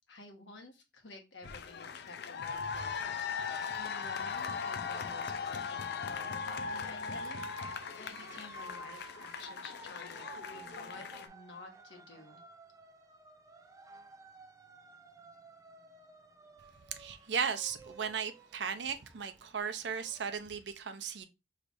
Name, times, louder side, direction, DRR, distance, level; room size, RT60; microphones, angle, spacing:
voice 1, 0.1-7.4 8.0-12.4, left 3 dB, 80° left, 1.2 m, -51 dB
sound 1, 1.4-11.3, left 6 dB, 60° left, 0.5 m, -39 dB
sound 2, 3.0-20.4, right 2 dB, 20° right, 0.5 m, -53 dB
voice 2, 16.9-21.2, right 6 dB, 65° right, 0.6 m, -36 dB
4.8 x 3.2 x 2.6 m
head